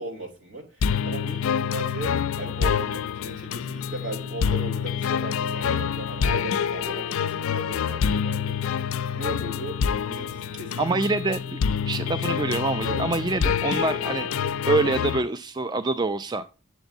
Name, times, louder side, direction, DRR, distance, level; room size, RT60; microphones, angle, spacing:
voice 1, 0.0-11.0 12.9-13.1, right 2 dB, 60° right, 2.8 m, -37 dB
sound 1, 0.8-15.2, left 7 dB, 85° left, 0.4 m, -27 dB
voice 2, 10.8-11.6 11.9-14.3 14.7-16.5, right 3 dB, 20° right, 0.3 m, -25 dB
8.1 x 6.9 x 2.6 m
head